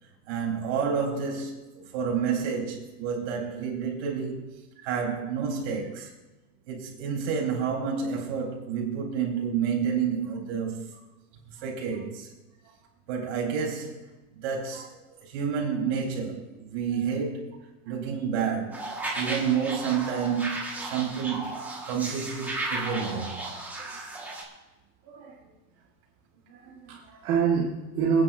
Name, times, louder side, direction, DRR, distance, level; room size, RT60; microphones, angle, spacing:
voice 1, 0.3-4.4 4.8-6.1 6.7-10.9 11.6-12.3 13.1-14.0 14.3-17.6 17.8-21.5 21.8-23.4, right 6 dB, 50° right, 4.0 m, -29 dB
sound 1, 18.7-24.4, right 2 dB, 5° right, 1.6 m, -35 dB
voice 2, 25.0-25.4 26.5-28.2, right 6 dB, 30° right, 1.6 m, -27 dB
28.5 x 9.8 x 2.6 m
supercardioid pair, 165°, 43 cm